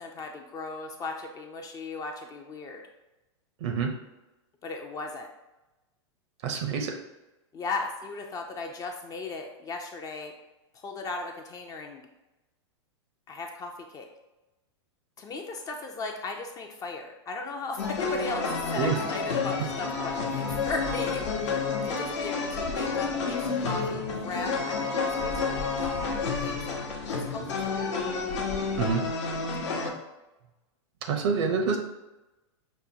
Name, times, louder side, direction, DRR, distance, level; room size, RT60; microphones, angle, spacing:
voice 1, 0.0-2.8 4.6-5.3 7.5-10.3 10.7-12.0 13.3-14.1 15.2-28.0 29.7-30.0, left 3 dB, 25° left, 3 dB, 0.4 m, -37 dB
voice 2, 3.6-3.9 6.4-6.9 18.8-19.0 28.8-29.0 31.1-31.8, right 5 dB, 65° right, 4 dB, 0.6 m, -26 dB
sound 1, 17.8-29.9, left 4 dB, 70° left, 0.8 m, -30 dB
5.3 x 2.1 x 2.7 m, 1.0 s
hypercardioid pair, 120°, 16 cm